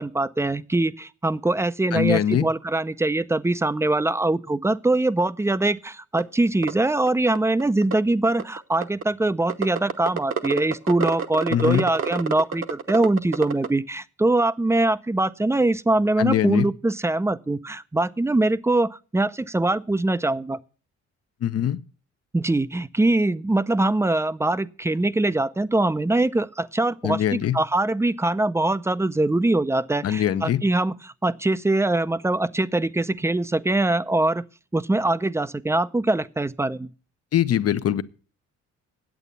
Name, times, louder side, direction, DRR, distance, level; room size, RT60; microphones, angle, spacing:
voice 1, 0.0-20.6 22.3-34.4 34.7-36.9, right 2 dB, 10° right, 0.5 m, -23 dB
voice 2, 1.9-2.4 11.5-11.9 16.2-16.7 21.4-21.8 27.0-27.6 30.0-30.6 37.3-38.0, left 10 dB, 55° left, 0.7 m, -22 dB
sound 1, 6.2-6.3 6.6-6.7 7.1-7.2 7.4-7.9 8.4-9.0 9.5-13.7, right 6 dB, 45° right, 1.0 m, -27 dB
9.1 x 8.1 x 6.8 m
cardioid pair, 90°, 30 cm